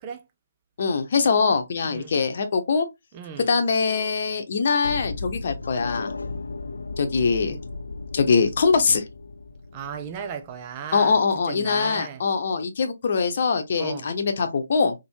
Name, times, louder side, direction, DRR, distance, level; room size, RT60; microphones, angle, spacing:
voice 1, 0.8-2.9 3.5-6.1 7.0-7.6 8.1-9.0 10.9-15.0, left 5 dB, 50° left, 0.9 m, -23 dB
voice 2, 1.8-2.2 3.1-3.5 9.7-11.2 11.4-12.2 13.8-14.1, right 7 dB, 25° right, 0.5 m, -36 dB
sound 1, 4.8-10.8, left 3 dB, 75° left, 0.5 m, -35 dB
4.4 x 2.9 x 2.8 m
figure-of-eight pair, 150°, 0 cm